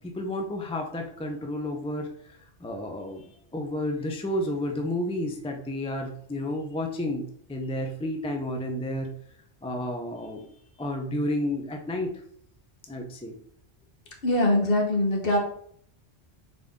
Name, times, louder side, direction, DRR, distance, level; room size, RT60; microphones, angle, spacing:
voice 1, 0.0-7.2 7.5-9.1 9.6-12.1 12.9-13.4, left 1 dB, 10° left, 2 dB, 0.3 m, -31 dB
voice 2, 14.2-15.4, left 1 dB, 55° left, 0 dB, 1.2 m, -22 dB
4.0 x 3.6 x 3.6 m, 0.64 s
omnidirectional pair, 1.2 m